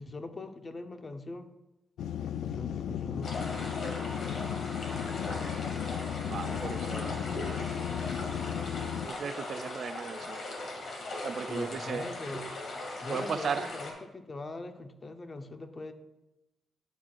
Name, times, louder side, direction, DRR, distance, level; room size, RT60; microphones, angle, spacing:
voice 1, 0.0-1.5 2.4-3.6 11.5-12.4 13.0-15.9, left 2 dB, 35° left, 7 dB, 0.7 m, -41 dB
sound 1, 2.0-9.1, left 9 dB, 85° left, 0.3 m, -35 dB
sound 2, 3.2-13.9, left 2 dB, 70° left, 2.1 m, -39 dB
voice 2, 6.3-7.8 9.0-10.4 11.2-12.0 13.1-13.7, right 7 dB, 60° right, 14 dB, 0.3 m, -37 dB
11.0 x 6.0 x 2.4 m, 0.96 s
cardioid pair, 80°, 0 cm